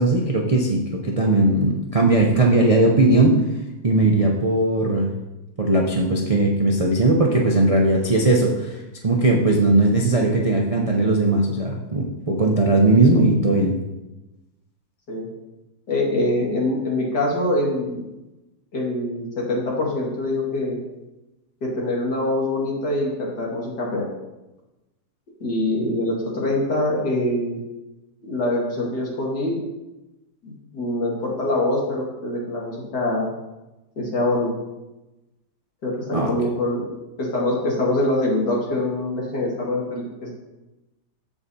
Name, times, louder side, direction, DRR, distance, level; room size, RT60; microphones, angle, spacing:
voice 1, 0.0-3.4 3.8-5.1 5.6-13.7 36.1-36.3, right 2 dB, 50° right, -1 dB, 0.4 m, -18 dB
voice 2, 15.9-18.0 18.7-20.8 21.6-24.1 25.4-27.6 28.2-29.6 30.4-33.3 34.0-34.5 35.8-36.9 37.2-40.3, left 1 dB, 85° left, -3 dB, 2.6 m, -24 dB
14.0 x 4.8 x 2.8 m, 1.0 s
omnidirectional pair, 1.8 m